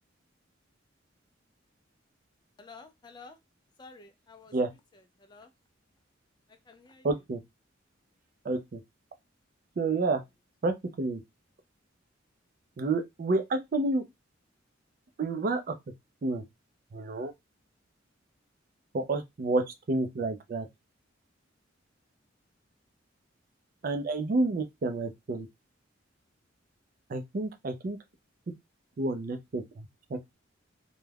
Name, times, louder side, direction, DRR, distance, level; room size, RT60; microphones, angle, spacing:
voice 1, 2.6-3.4 3.8-4.6 5.3-5.5 6.7-7.1, left 4 dB, 20° left, 0.3 m, -50 dB
voice 2, 7.0-7.4 8.4-8.8 9.8-10.2 10.6-11.2 12.8-14.0 15.2-15.8 16.2-16.4 16.9-17.3 18.9-20.7 23.8-25.5 27.1-28.0 29.0-30.3, right 3 dB, 45° right, 0.4 m, -30 dB
2.3 x 2.1 x 3.2 m
head